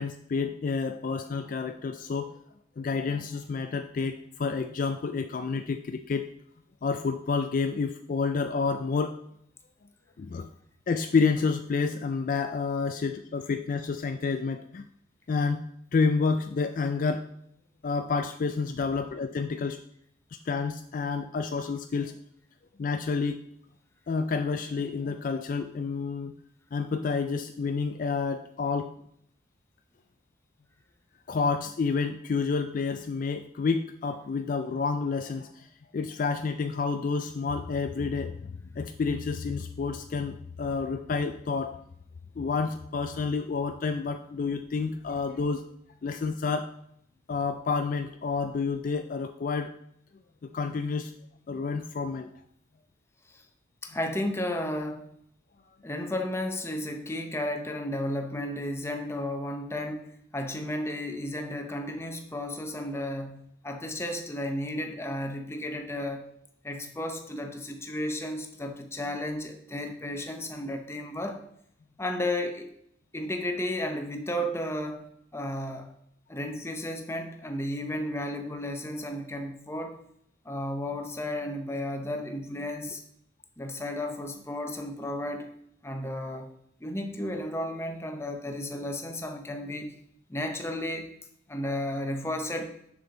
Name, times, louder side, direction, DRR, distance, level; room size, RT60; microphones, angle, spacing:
voice 1, 0.0-2.4 2.8-6.3 6.8-9.2 10.2-10.5 10.9-14.9 15.3-17.3 17.8-19.8 20.5-22.2 22.8-23.4 24.1-26.3 26.7-28.9 31.3-35.7 35.9-41.8 42.4-45.6 46.0-46.7 47.3-49.7 50.4-51.1 51.5-52.3, left 4 dB, 45° left, 8 dB, 0.3 m, -29 dB
voice 2, 53.8-55.1 55.8-66.3 66.6-71.4 72.0-72.7 73.1-75.9 76.3-80.0 80.4-83.0 83.6-85.5 85.8-86.5 86.8-89.9 90.3-91.1 91.5-92.7, left 1 dB, 15° left, 5 dB, 0.7 m, -33 dB
6.7 x 6.3 x 3.8 m, 0.69 s
head